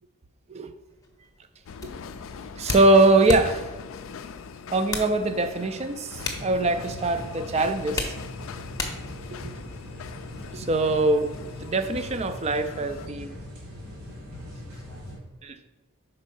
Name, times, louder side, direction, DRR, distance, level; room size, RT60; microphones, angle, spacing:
sound 1, 0.9-15.5, left 3 dB, 15° left, 0.7 m, -40 dB
sound 2, 1.7-13.1, left 6 dB, 65° left, 0.3 m, -41 dB
voice 1, 2.6-3.7 4.7-8.1 9.3-9.4 10.5-11.3 11.6-13.4 15.4-15.6, right 2 dB, 30° right, 10 dB, 0.4 m, -22 dB
sound 3, 6.1-15.2, left 1 dB, 80° right, 2.2 m, -41 dB
5.3 x 4.2 x 5.4 m, 1.1 s
head